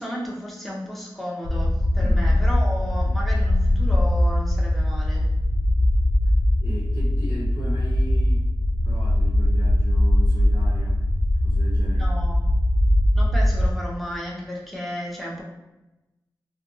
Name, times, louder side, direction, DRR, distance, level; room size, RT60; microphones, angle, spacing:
voice 1, 0.0-5.3 11.9-12.4 13.1-15.4, equal, ahead, -4 dB, 0.8 m, -33 dB
sound 1, 1.4-13.7, left 1 dB, 45° left, 0.4 m, -21 dB
voice 2, 2.0-2.4 6.6-8.5 8.8-11.0 11.4-12.1, left 1 dB, 75° left, -9 dB, 0.8 m, -37 dB
2.5 x 2.3 x 2.6 m, 0.98 s
cardioid pair, 50°, 8 cm